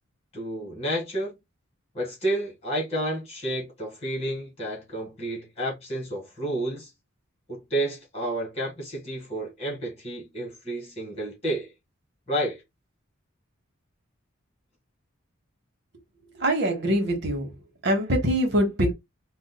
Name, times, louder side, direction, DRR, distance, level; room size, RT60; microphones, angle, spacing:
voice 1, 0.3-1.4 1.9-6.9 7.5-11.7 12.3-12.6, right 1 dB, 30° left, 1.9 m, -30 dB
voice 2, 16.4-17.5 17.8-18.9, equal, 50° right, 1.0 m, -23 dB
5.2 x 2.4 x 2.2 m
head